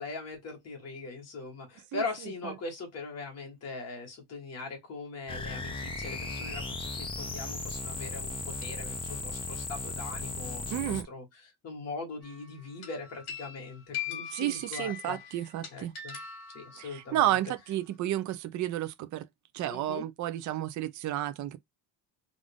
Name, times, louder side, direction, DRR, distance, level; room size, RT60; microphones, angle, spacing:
voice 1, 0.0-16.2 16.5-17.4 19.7-20.1, left 3 dB, 35° left, 1.8 m, -41 dB
sound 1, 5.3-11.0, left 3 dB, 15° left, 0.5 m, -36 dB
voice 2, 10.7-11.1 14.3-15.9 16.8-19.2 19.5-21.6, right 13 dB, 45° right, 0.5 m, -31 dB
sound 2, 12.2-12.5 12.8-17.2, left 8 dB, 65° left, 1.8 m, -41 dB
3.6 x 2.5 x 3.4 m
cardioid pair, 175°, 42 cm